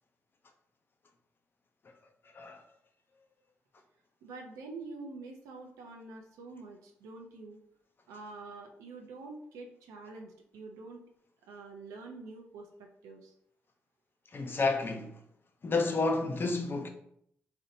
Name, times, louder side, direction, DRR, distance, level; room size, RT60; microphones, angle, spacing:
voice 1, 4.2-7.6 8.1-11.0 11.4-13.3, right 3 dB, 85° right, 0.5 m, -46 dB
voice 2, 14.3-15.1 15.6-16.9, left 3 dB, 45° left, 0.5 m, -30 dB
2.8 x 2.0 x 2.6 m
supercardioid pair, 45°, 5 cm